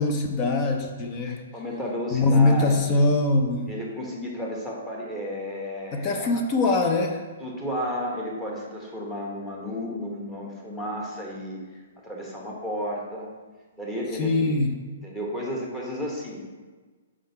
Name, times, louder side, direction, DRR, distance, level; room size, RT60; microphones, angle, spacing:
voice 1, 0.0-1.4 2.1-3.7 5.9-7.2 14.1-14.7, left 2 dB, 25° left, 4 dB, 0.5 m, -22 dB
voice 2, 1.3-3.1 3.7-6.3 7.4-11.6 12.0-13.3 13.8-14.5 15.0-16.4, equal, 10° left, -3 dB, 1.1 m, -32 dB
4.7 x 3.8 x 5.4 m, 1.3 s
hypercardioid pair, 155°, 0 cm